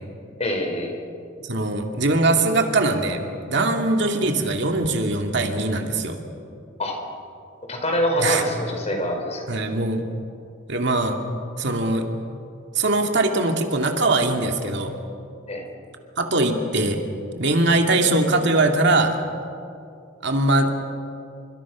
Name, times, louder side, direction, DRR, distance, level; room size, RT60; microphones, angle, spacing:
voice 1, 0.4-1.0 6.8-7.0 7.7-9.4 15.5-15.6, equal, 35° left, 3 dB, 4.9 m, -25 dB
voice 2, 1.4-6.2 8.2-8.4 9.5-10.0 10.7-11.2 11.6-12.1 12.7-14.9 16.2-17.0 17.4-19.2 20.2-20.7, right 2 dB, 65° right, 3 dB, 2.5 m, -21 dB
29.5 x 26.0 x 6.3 m, 2.5 s
head